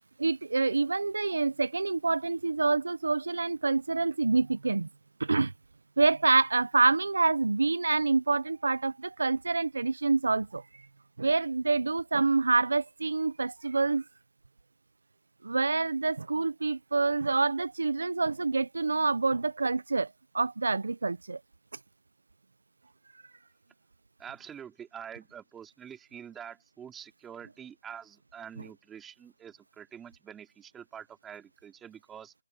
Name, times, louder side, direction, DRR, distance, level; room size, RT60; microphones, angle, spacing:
voice 1, 0.2-4.9 5.2-5.5 6.0-10.8 11.2-14.0 15.4-21.4, right 3 dB, 85° right, 0.7 m, -27 dB
voice 2, 24.2-32.3, right 8 dB, 10° right, 3.8 m, -46 dB
hypercardioid pair, 165°, 0 cm